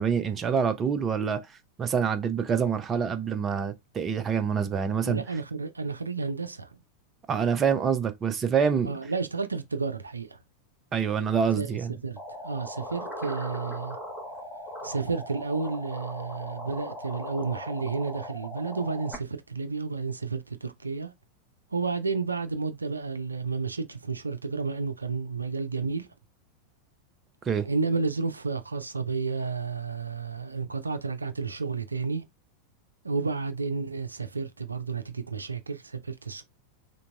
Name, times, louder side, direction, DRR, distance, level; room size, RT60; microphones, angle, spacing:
voice 1, 0.0-1.4 1.8-5.2 7.3-8.9 10.9-11.9 27.5-27.7, right 7 dB, 25° right, 0.5 m, -26 dB
voice 2, 5.1-6.8 8.8-10.4 11.6-14.0 14.8-21.1 21.7-26.1 27.7-32.2 33.0-36.4, right 4 dB, 80° right, 0.4 m, -31 dB
sound 1, 12.2-19.2, left 1 dB, 15° left, 1.0 m, -39 dB
3.9 x 3.4 x 2.2 m
figure-of-eight pair, 90°, 0 cm